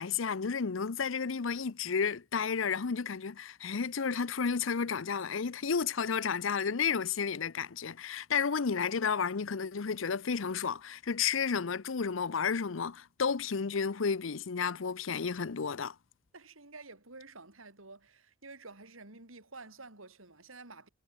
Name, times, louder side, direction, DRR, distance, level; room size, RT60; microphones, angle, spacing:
voice 1, 0.0-15.9, left 6 dB, 70° left, 0.7 m, -32 dB
voice 2, 16.3-20.9, right 3 dB, 85° right, 5.6 m, -50 dB
head